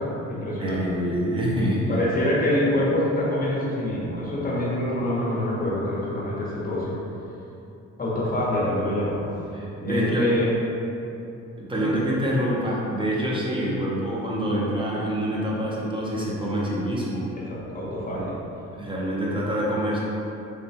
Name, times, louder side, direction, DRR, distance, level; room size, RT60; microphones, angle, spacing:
voice 1, 0.0-0.9 1.9-6.9 8.0-9.2 9.8-10.5 11.8-11.9 17.5-18.3, left 1 dB, 30° left, -6 dB, 1.0 m, -25 dB
voice 2, 0.6-2.0 9.5-10.3 11.6-17.3 18.1-18.2 18.8-20.0, equal, 15° right, -5 dB, 0.7 m, -26 dB
3.2 x 3.0 x 2.8 m, 2.8 s
cardioid pair, 90°, 30 cm